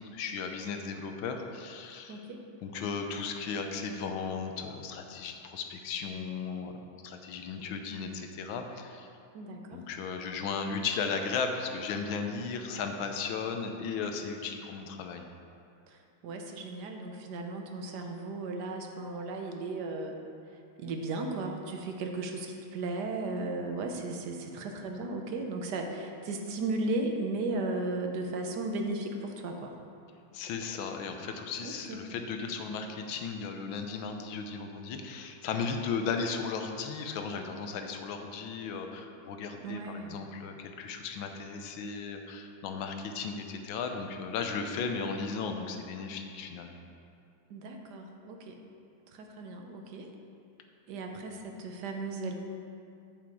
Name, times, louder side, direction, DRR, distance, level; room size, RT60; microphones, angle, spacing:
voice 1, 0.1-2.2 2.6-6.8 7.0-9.1 9.7-15.3 30.3-46.8, left 5 dB, 80° left, 5 dB, 1.5 m, -36 dB
voice 2, 2.1-2.4 9.3-9.8 15.9-20.2 20.8-29.8 31.6-32.0 39.6-40.2 47.5-48.6 49.1-50.1 50.9-52.3, right 2 dB, 65° right, 3 dB, 1.3 m, -35 dB
7.7 x 7.5 x 4.7 m, 2.5 s
omnidirectional pair, 2.2 m